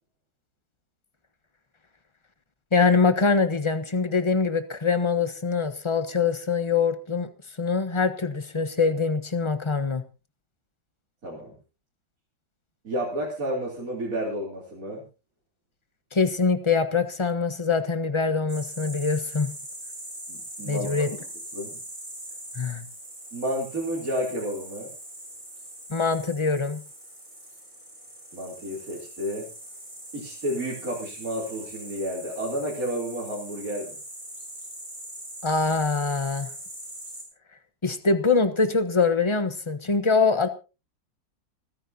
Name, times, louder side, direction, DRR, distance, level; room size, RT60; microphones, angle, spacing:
voice 1, 2.7-7.3 7.6-10.0 16.1-19.5 20.6-21.1 22.5-22.9 25.9-26.8 35.4-36.5 37.8-40.5, left 4 dB, 20° left, 10 dB, 0.8 m, -24 dB
voice 2, 11.2-11.6 12.8-15.0 20.3-21.0 21.5-21.8 23.3-24.9 28.3-29.4 30.1-34.0, equal, 50° right, -4 dB, 3.8 m, -31 dB
sound 1, 18.5-37.2, right 1 dB, 25° right, 6.1 m, -41 dB
28.5 x 10.0 x 2.8 m, 0.31 s
omnidirectional pair, 2.0 m